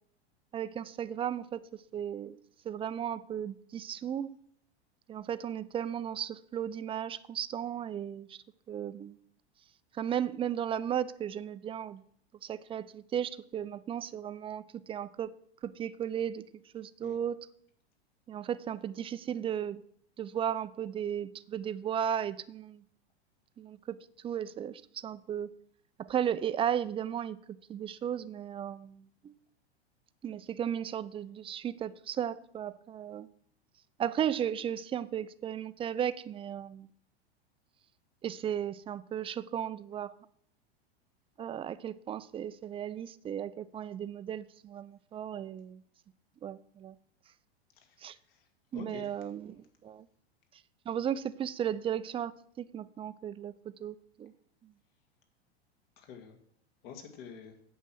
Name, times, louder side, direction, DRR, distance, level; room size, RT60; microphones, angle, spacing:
voice 1, 0.5-2.4 2.6-4.3 5.1-9.2 9.9-12.0 12.4-15.3 15.6-16.5 16.7-17.5 18.3-19.8 20.2-22.8 23.6-25.5 26.0-27.4 27.7-29.3 30.2-33.3 34.0-36.9 38.2-40.1 41.4-45.8 46.4-47.0 48.0-48.2 48.7-50.1 50.9-53.5 53.8-54.3, right 9 dB, 15° right, 0.4 m, -35 dB
voice 2, 47.8-48.5 48.7-49.1 56.0-56.4 56.8-57.6, left 7 dB, 60° left, 2.3 m, -47 dB
8.4 x 6.3 x 7.7 m
hypercardioid pair, 105°, 32 cm